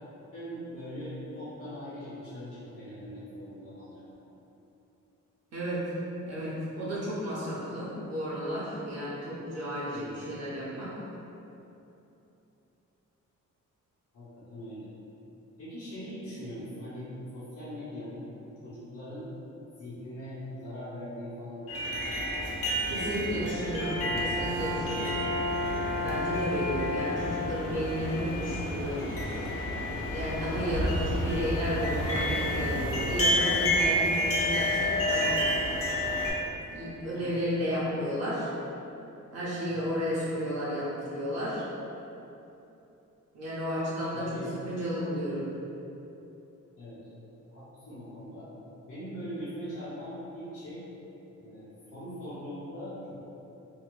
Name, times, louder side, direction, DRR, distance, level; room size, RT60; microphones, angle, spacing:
voice 1, 0.3-4.0 9.9-10.3 14.1-14.9 15.6-18.3 18.6-19.3 19.8-21.9 22.9-23.6 24.0-24.9 37.1-37.4 39.7-40.0 44.1-44.6 46.8-47.0 47.5-48.5 48.9-50.8 51.4-53.1, equal, 80° left, -14 dB, 1.0 m, -41 dB
voice 2, 5.5-5.9 6.2-10.9 22.9-25.4 25.7-29.0 30.1-35.4 36.7-38.5 39.3-41.6 43.3-45.5, equal, 55° right, -9 dB, 0.7 m, -33 dB
sound 1, 21.7-36.3, left 1 dB, 45° left, 0.5 m, -30 dB
Brass instrument, 23.4-27.8, left 2 dB, 15° right, 0.6 m, -33 dB
2.7 x 2.5 x 3.1 m, 2.9 s
wide cardioid pair, 155°, 31 cm